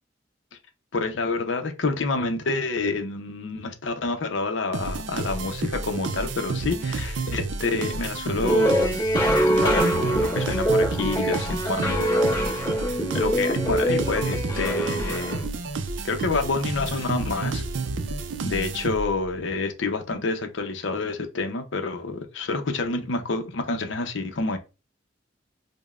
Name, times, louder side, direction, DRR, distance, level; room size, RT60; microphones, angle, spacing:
voice 1, 0.9-9.0 9.6-12.5 13.1-15.5 16.0-17.6 18.4-24.6, left 3 dB, 70° left, 0.7 m, -28 dB
sound 1, 4.7-19.3, right 3 dB, 70° right, 0.4 m, -30 dB
sound 2, 8.4-15.4, equal, 25° left, 1.7 m, -24 dB
5.0 x 2.1 x 2.4 m
head